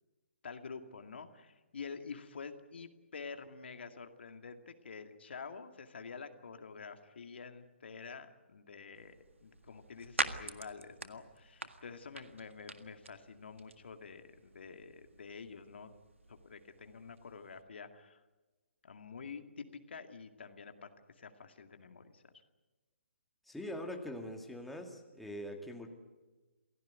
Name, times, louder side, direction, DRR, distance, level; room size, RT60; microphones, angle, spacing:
voice 1, 0.4-9.1 9.4-15.9 16.3-18.2 18.8-20.9 21.2-22.2, left 5 dB, 60° left, 7 dB, 2.2 m, -48 dB
sound 1, 8.9-17.6, right 2 dB, 85° right, 1.8 m, -45 dB
voice 2, 23.5-25.9, left 1 dB, ahead, 1 dB, 2.3 m, -43 dB
28.0 x 17.0 x 9.5 m, 1.2 s
figure-of-eight pair, 135°, 7 cm